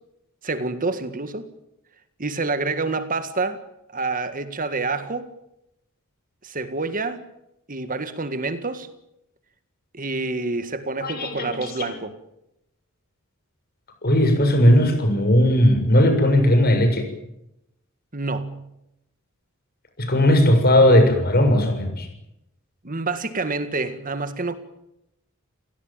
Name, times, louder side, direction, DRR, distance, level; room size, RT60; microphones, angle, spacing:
voice 1, 0.4-1.5 2.2-3.6 3.9-5.3 6.4-7.2 7.7-8.9 9.9-12.1 18.1-18.7 22.8-24.6, right 3 dB, 40° right, 1.9 m, -27 dB
voice 2, 11.0-11.6 14.0-17.1 20.0-22.1, left 1 dB, 45° left, 7.1 m, -17 dB
30.0 x 17.5 x 9.2 m
head